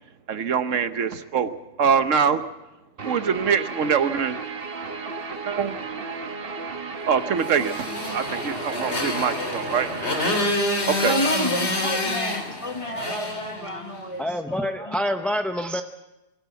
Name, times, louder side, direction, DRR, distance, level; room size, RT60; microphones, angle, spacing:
voice 1, 0.3-2.4 3.0-4.4 5.5-5.7 7.1-9.9 10.9-11.1, right 6 dB, 75° right, 11 dB, 1.3 m, -24 dB
Guitar, 3.0-10.4, right 4 dB, 45° right, 1.5 m, -34 dB
Motorcycle, 7.4-14.1, left 1 dB, 60° left, 3.2 m, -28 dB
voice 2, 11.0-15.0, equal, 25° left, 5 dB, 1.8 m, -30 dB
voice 3, 14.2-15.8, equal, ahead, 6 dB, 0.6 m, -26 dB
23.5 x 14.5 x 8.3 m, 0.99 s
omnidirectional pair, 1.3 m